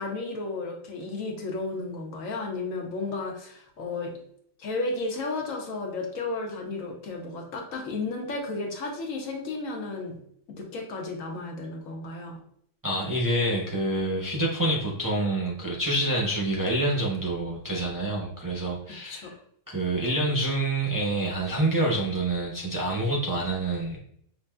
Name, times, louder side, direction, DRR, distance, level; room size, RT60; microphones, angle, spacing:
voice 1, 0.0-4.1 4.6-10.2 10.5-12.4 19.0-19.3, left 3 dB, 85° left, 1 dB, 1.3 m, -33 dB
voice 2, 12.8-19.3 19.7-24.0, right 1 dB, 25° right, -3 dB, 0.5 m, -27 dB
5.7 x 2.7 x 2.2 m, 0.67 s
omnidirectional pair, 1.3 m